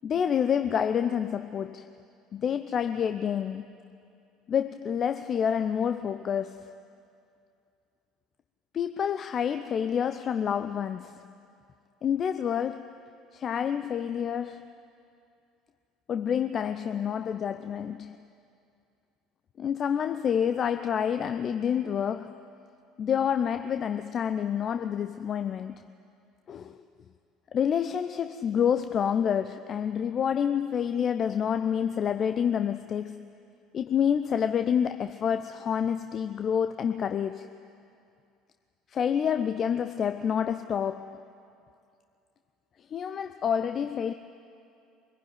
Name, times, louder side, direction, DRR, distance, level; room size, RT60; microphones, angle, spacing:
voice 1, 0.0-1.9 2.3-3.7 4.5-6.7 8.7-11.1 12.0-13.0 13.3-14.7 16.1-18.2 19.6-22.4 23.0-25.8 26.5-26.8 27.5-33.2 33.7-37.5 38.9-41.2 42.9-44.1, left 8 dB, 40° left, 0.7 m, -28 dB
24.0 x 16.5 x 9.7 m
figure-of-eight pair, 60°, 0 cm